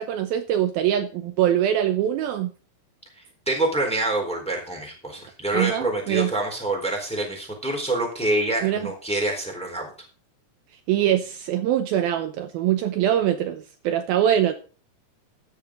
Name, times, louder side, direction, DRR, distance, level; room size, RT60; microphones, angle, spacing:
voice 1, 0.0-2.5 5.5-6.3 8.6-8.9 10.9-14.6, right 11 dB, 75° right, 7 dB, 2.5 m, -23 dB
voice 2, 3.2-9.9, right 2 dB, ahead, 0 dB, 3.5 m, -26 dB
14.0 x 8.9 x 3.8 m, 0.38 s
omnidirectional pair, 4.7 m